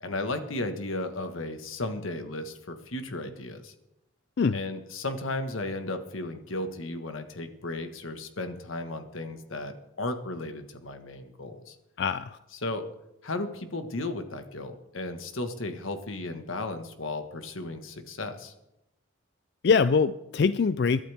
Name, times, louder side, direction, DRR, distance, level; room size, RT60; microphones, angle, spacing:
voice 1, 0.0-3.7 4.5-11.8 12.6-12.9 13.2-18.5, left 2 dB, 85° left, 7 dB, 1.5 m, -35 dB
voice 2, 12.0-12.4 19.6-21.0, left 5 dB, 55° left, 13 dB, 0.4 m, -23 dB
22.0 x 11.5 x 3.5 m, 0.90 s
head